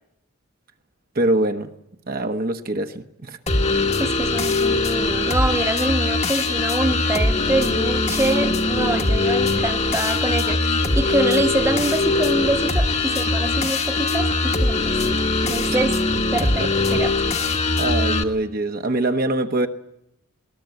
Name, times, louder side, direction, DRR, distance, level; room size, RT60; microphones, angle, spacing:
voice 1, 1.1-1.7 2.1-3.4 15.7-15.8 16.4-17.0 17.8-19.7, right 2 dB, 40° right, 1.1 m, -24 dB
sound 1, 3.5-18.2, left 2 dB, 30° left, 1.3 m, -21 dB
voice 2, 4.0-15.0 15.4-16.0 16.3-17.1, right 2 dB, 10° right, 1.2 m, -25 dB
20.5 x 19.0 x 9.1 m
head